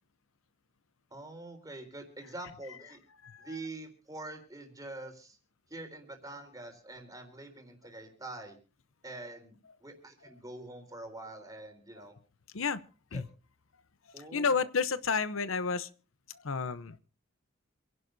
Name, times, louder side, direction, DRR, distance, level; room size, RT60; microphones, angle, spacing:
voice 1, 1.1-3.0 3.4-5.4 5.7-8.6 9.0-12.2 13.1-13.2 14.1-14.5, right 2 dB, 20° right, 3.8 m, -45 dB
voice 2, 3.2-3.6 12.0-12.1 12.5-12.8 13.1-13.3 14.2-15.9 16.3-17.0, left 5 dB, 80° left, 0.8 m, -31 dB
27.5 x 11.0 x 2.7 m
head